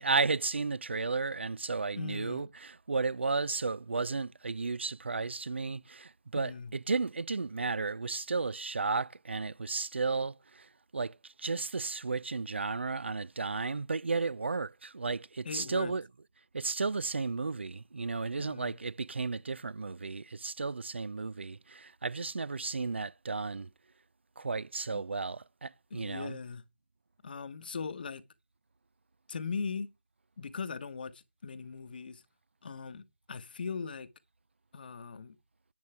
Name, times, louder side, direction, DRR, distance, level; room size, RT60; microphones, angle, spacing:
voice 1, 0.0-16.1 16.5-23.7 24.4-26.4, right 4 dB, 90° right, 0.4 m, -33 dB
voice 2, 1.9-2.5 6.4-6.7 15.4-15.9 18.4-18.8 24.9-25.0 25.9-26.6 27.2-28.2 29.3-29.9 30.4-32.2 32.6-34.1 34.7-35.3, left 5 dB, 55° left, 1.1 m, -39 dB
10.5 x 8.7 x 3.4 m
figure-of-eight pair, 160°, 6 cm